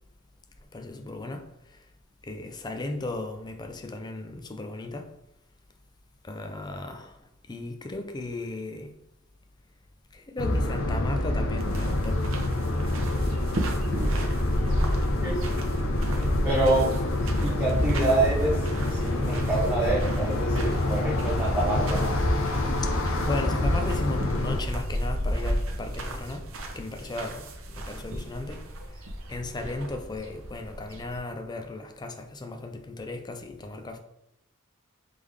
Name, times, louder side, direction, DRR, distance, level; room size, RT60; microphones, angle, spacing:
voice 1, 0.7-1.8 2.2-5.2 6.2-7.2 7.5-9.0 10.1-12.3 13.4-13.5 22.8-29.0 29.3-34.0, left 2 dB, 20° left, 0.4 m, -36 dB
sound 1, 10.4-24.6, left 1 dB, 65° left, 0.6 m, -26 dB
sound 2, 11.6-31.2, equal, 65° right, 0.7 m, -34 dB
voice 2, 16.4-16.9 17.4-18.6 18.9-22.0, right 2 dB, 10° right, 0.7 m, -26 dB
3.6 x 3.4 x 3.3 m
head